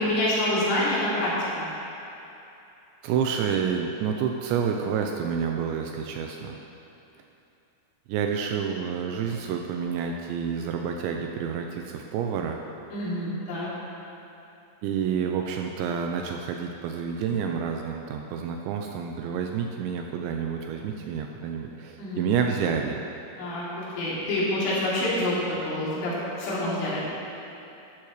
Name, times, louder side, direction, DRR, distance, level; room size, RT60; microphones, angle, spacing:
voice 1, 0.0-1.7 12.9-13.7 22.0-22.3 23.4-27.1, left 1 dB, 90° left, -9 dB, 5.5 m, -27 dB
voice 2, 3.0-6.6 8.1-12.6 14.8-23.0, right 7 dB, 85° right, 3 dB, 2.7 m, -29 dB
13.0 x 12.0 x 3.1 m, 2.8 s
omnidirectional pair, 5.6 m